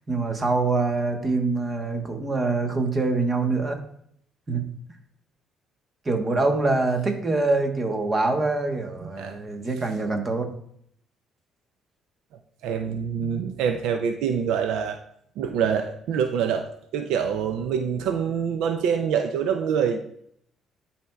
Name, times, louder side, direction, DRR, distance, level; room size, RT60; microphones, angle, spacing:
voice 1, 0.1-3.8 4.5-4.6 6.0-10.5, right 3 dB, 30° right, 5 dB, 1.1 m, -24 dB
voice 2, 12.6-15.0 15.4-20.0, right 7 dB, 85° right, 7 dB, 0.4 m, -25 dB
11.0 x 4.3 x 2.3 m, 0.69 s
cardioid pair, 85°, 0 cm